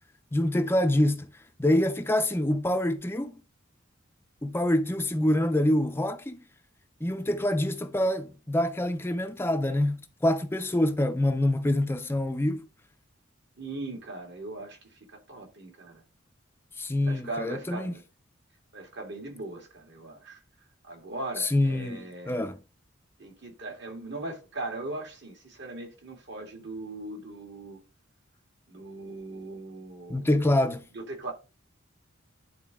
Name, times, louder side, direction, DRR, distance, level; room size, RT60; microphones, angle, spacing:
voice 1, 0.3-3.4 4.4-6.4 7.0-12.7 16.8-17.9 21.4-22.6 30.1-30.9, left 1 dB, 10° left, 0.5 m, -26 dB
voice 2, 13.6-14.8 15.1-16.0 17.0-18.0 18.7-20.4 20.8-22.5 23.2-27.8 28.7-30.3 30.9-31.3, right 2 dB, 60° right, 2.1 m, -39 dB
10.5 x 3.9 x 3.5 m
head